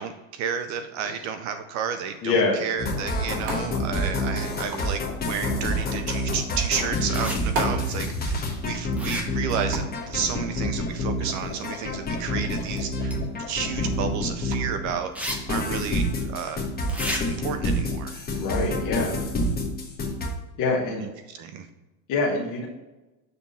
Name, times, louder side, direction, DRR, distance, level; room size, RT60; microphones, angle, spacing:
voice 1, 0.0-13.2 13.5-16.6 17.3-18.2 21.3-21.7, right 7 dB, 40° right, 8 dB, 0.5 m, -31 dB
sound 1, 2.1-14.6, right 2 dB, 60° right, 2.1 m, -40 dB
voice 2, 2.2-2.6 18.4-19.2 20.6-21.0 22.1-22.7, left 3 dB, 40° left, -4 dB, 1.3 m, -25 dB
sound 2, 2.8-15.0 15.3-20.3, left 1 dB, 20° left, 1.2 m, -27 dB
sound 3, 7.1-7.4 8.9-9.5 13.1-13.2 15.1-15.4 15.7-15.8 16.9-17.2, equal, 5° right, 0.8 m, -31 dB
6.8 x 3.5 x 5.4 m, 1.1 s
supercardioid pair, 140°, 47 cm